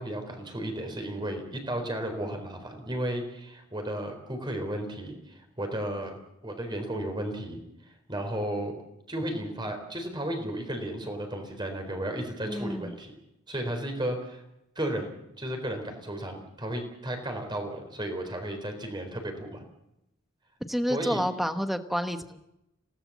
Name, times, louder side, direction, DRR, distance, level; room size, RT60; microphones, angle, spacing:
voice 1, 0.0-6.1 6.4-7.6 8.1-8.8 9.1-13.1 13.5-14.4 14.8-19.6 20.9-21.2, right 1 dB, 20° right, 5 dB, 4.1 m, -34 dB
voice 2, 12.4-13.0 20.7-22.4, equal, ahead, 8 dB, 1.2 m, -29 dB
27.5 x 18.0 x 7.4 m, 0.89 s
head